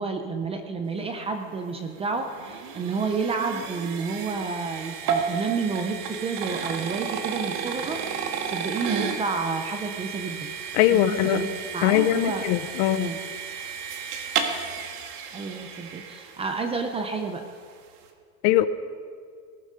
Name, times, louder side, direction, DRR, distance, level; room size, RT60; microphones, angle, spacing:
voice 1, 0.0-10.5 10.9-11.5 11.7-12.4 12.9-13.2 15.3-17.4, right 4 dB, 15° right, 6 dB, 0.5 m, -30 dB
sound 1, 1.6-16.8, right 7 dB, 80° right, 1.9 m, -33 dB
voice 2, 10.7-11.4 11.8-13.1 18.4-18.7, left 13 dB, 50° left, 13 dB, 0.7 m, -21 dB
19.0 x 12.0 x 5.0 m, 2.1 s
supercardioid pair, 165°, 45 cm